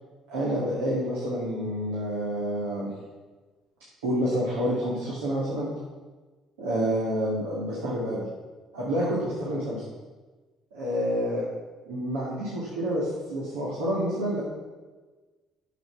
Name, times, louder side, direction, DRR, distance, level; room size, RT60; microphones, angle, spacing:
voice 1, 0.3-2.9 4.0-5.7 6.6-8.3 8.7-9.8 10.7-11.5 11.9-14.4, equal, 85° right, -7 dB, 2.6 m, -28 dB
9.3 x 7.5 x 5.9 m, 1.3 s
hypercardioid pair, 60°, 0 cm